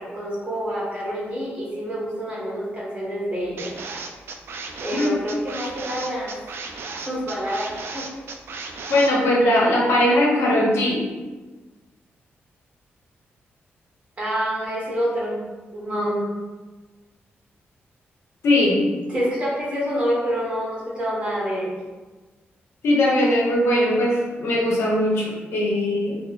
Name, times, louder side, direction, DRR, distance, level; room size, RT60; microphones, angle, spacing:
voice 1, 0.0-3.7 4.8-6.3 7.0-7.7 7.9-8.0 14.2-15.4 15.7-16.3 19.1-21.7, equal, 25° right, -7 dB, 1.4 m, -27 dB
sound 1, 3.6-9.1, right 4 dB, 65° right, 0.3 m, -35 dB
voice 2, 8.9-11.1 18.4-18.8 22.8-26.2, left 1 dB, 85° left, -2 dB, 0.8 m, -20 dB
4.1 x 2.0 x 3.0 m, 1.3 s
wide cardioid pair, 130°, 4 cm